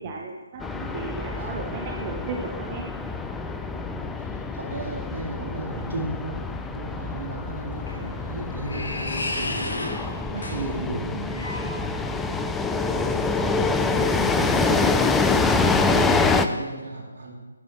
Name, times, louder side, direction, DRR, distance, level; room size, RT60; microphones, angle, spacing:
voice 1, 0.0-2.9, right 4 dB, 30° right, 1 dB, 0.7 m, -35 dB
sound 1, 0.6-16.5, left 3 dB, 5° left, 0.3 m, -26 dB
voice 2, 3.8-9.6 10.3-12.3 12.7-15.0 15.7-17.3, right 2 dB, 60° right, -1 dB, 2.2 m, -36 dB
sound 2, 7.4-12.4, left 2 dB, 75° left, 1.5 m, -33 dB
10.5 x 5.3 x 3.2 m, 1.2 s
figure-of-eight pair, 150°, 0 cm